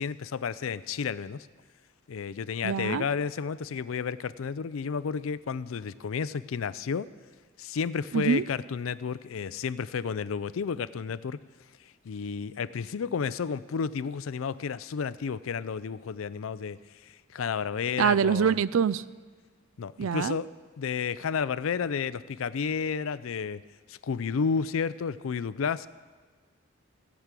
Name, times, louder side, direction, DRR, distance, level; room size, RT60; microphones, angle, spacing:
voice 1, 0.0-1.5 2.1-7.1 7.6-11.4 12.0-16.8 17.0-18.6 19.8-20.5 20.8-23.6 23.9-25.9, left 6 dB, 85° left, 17 dB, 0.4 m, -31 dB
voice 2, 2.6-3.0 8.1-8.4 18.0-19.0 20.0-20.4, right 7 dB, 80° right, 18 dB, 0.4 m, -24 dB
17.0 x 6.2 x 8.2 m, 1.4 s
head